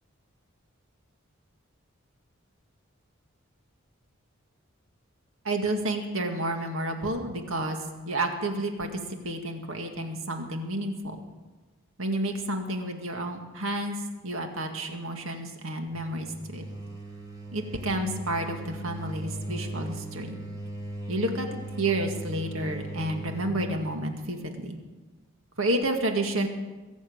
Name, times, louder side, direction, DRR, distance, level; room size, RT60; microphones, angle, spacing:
voice 1, 5.4-7.8 8.1-8.9 9.2-11.2 12.0-14.0 14.2-16.7 17.5-20.4 21.1-21.5 21.8-24.8 25.6-26.5, right 1 dB, 75° right, 4 dB, 2.0 m, -30 dB
sound 1, 15.9-23.6, right 1 dB, 20° right, 3.1 m, -38 dB
22.0 x 7.4 x 8.9 m, 1.2 s
head